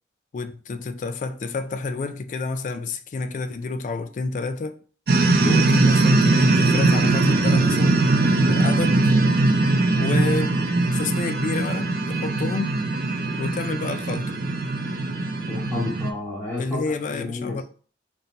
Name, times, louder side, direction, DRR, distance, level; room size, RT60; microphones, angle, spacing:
voice 1, 0.3-4.8 5.5-8.0 8.5-9.0 10.0-10.6 10.9-12.8 13.4-14.4 16.6-17.6, left 3 dB, 45° left, 0.3 m, -29 dB
sound 1, 5.1-16.1, right 2 dB, 55° right, 0.5 m, -20 dB
voice 2, 5.4-5.7 15.5-16.8 17.1-17.6, left 2 dB, 15° left, 1.2 m, -30 dB
4.3 x 2.2 x 3.8 m
head